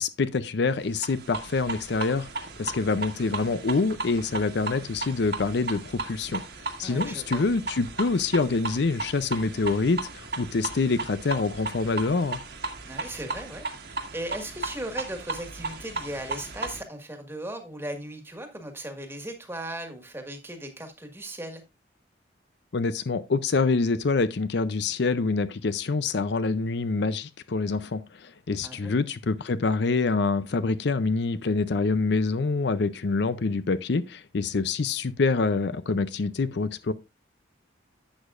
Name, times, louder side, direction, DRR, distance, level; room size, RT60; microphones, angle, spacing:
voice 1, 0.0-6.4 6.8-12.4 22.7-36.9, left 4 dB, 60° left, 0.5 m, -26 dB
sound 1, 0.9-16.8, right 3 dB, 55° right, 1.6 m, -36 dB
voice 2, 6.8-7.4 12.9-13.6 13.9-21.6 28.6-29.0, right 1 dB, 10° right, 1.6 m, -37 dB
11.5 x 8.2 x 2.5 m
head